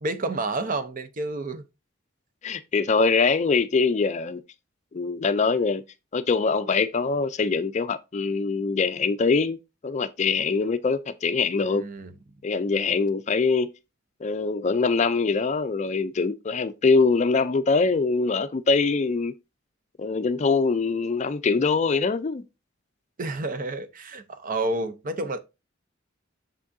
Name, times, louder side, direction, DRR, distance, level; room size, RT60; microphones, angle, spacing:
voice 1, 0.0-1.6 11.6-12.1 23.2-25.4, right 2 dB, 45° right, 0.7 m, -30 dB
voice 2, 2.4-4.4 4.9-5.8 6.1-9.6 9.8-11.8 12.4-13.7 14.2-19.3 20.0-22.4, left 4 dB, 35° left, 0.4 m, -23 dB
6.9 x 6.0 x 2.6 m
head